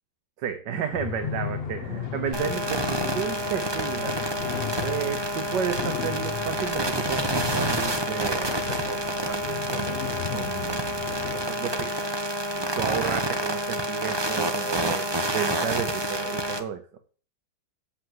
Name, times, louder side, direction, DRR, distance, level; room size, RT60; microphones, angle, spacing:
voice 1, 0.4-4.2 4.8-10.0 10.3-11.0 11.3-12.1 12.5-16.8, right 8 dB, 80° right, 7 dB, 1.6 m, -32 dB
sound 1, 0.9-11.5, left 8 dB, 50° left, 0.8 m, -35 dB
sound 2, 2.3-16.6, right 1 dB, 20° right, 0.9 m, -28 dB
8.3 x 7.9 x 7.8 m, 0.42 s
omnidirectional pair, 1.9 m